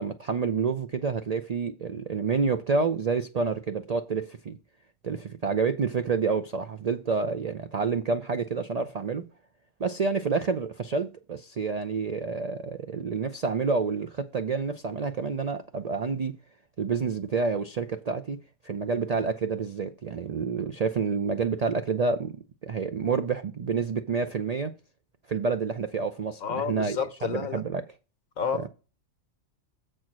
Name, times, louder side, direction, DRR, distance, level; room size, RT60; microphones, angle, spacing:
voice 1, 0.0-4.6 5.0-9.2 9.8-16.4 16.8-22.4 22.6-24.7 25.3-27.8 28.5-28.7, right 5 dB, 70° right, 0.3 m, -28 dB
voice 2, 26.4-27.6 28.4-28.7, left 7 dB, 90° left, 1.5 m, -30 dB
7.5 x 4.5 x 5.9 m
omnidirectional pair, 1.4 m